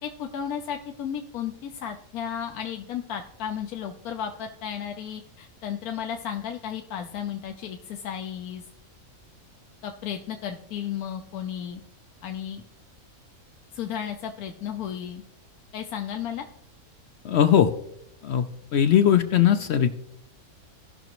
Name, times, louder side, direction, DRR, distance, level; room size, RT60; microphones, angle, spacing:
voice 1, 0.0-8.6 9.8-11.8 12.2-12.6 13.7-15.2 15.7-16.4, left 8 dB, 85° left, 4 dB, 1.2 m, -34 dB
voice 2, 17.2-17.7 18.2-18.5 18.7-19.9, left 9 dB, 65° left, 10 dB, 0.6 m, -19 dB
17.5 x 6.0 x 3.0 m, 0.77 s
omnidirectional pair, 1.5 m